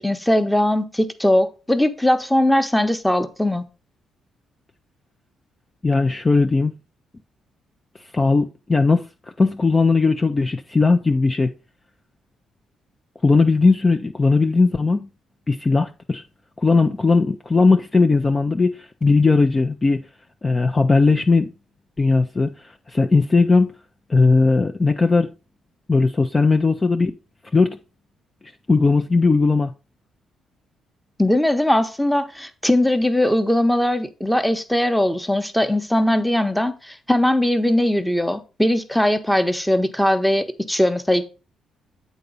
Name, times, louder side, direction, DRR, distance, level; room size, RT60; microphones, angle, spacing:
voice 1, 0.0-3.6 31.2-41.3, left 1 dB, 5° left, 0.9 m, -20 dB
voice 2, 5.8-6.7 8.1-9.0 9.4-11.5 13.2-15.1 15.5-16.2 16.6-20.0 20.4-21.5 22.0-23.7 24.1-25.3 25.9-27.1 27.5-27.8 28.7-29.7, left 3 dB, 25° left, 0.5 m, -18 dB
8.2 x 3.9 x 5.4 m
cardioid pair, 90°, 0 cm